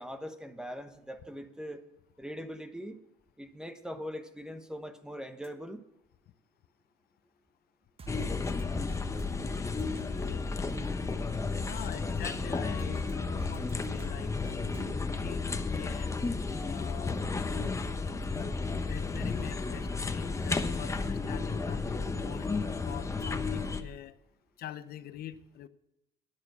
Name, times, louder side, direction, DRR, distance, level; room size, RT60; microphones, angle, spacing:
voice 1, 0.0-1.8 2.2-3.0 3.4-5.8, equal, 5° right, 8 dB, 1.1 m, -41 dB
sound 1, 5.4-5.5 8.0-10.4 12.8-14.9, right 6 dB, 35° right, 1.3 m, -47 dB
sound 2, 8.1-23.8, left 4 dB, 15° left, 1.0 m, -33 dB
voice 2, 11.7-15.4 15.7-16.1 16.6-17.2 18.9-21.8 22.2-22.5 22.8-24.2 24.6-25.7, left 11 dB, 65° left, 13 dB, 0.9 m, -45 dB
11.5 x 10.5 x 6.2 m, 0.87 s
cardioid pair, 110°, 17 cm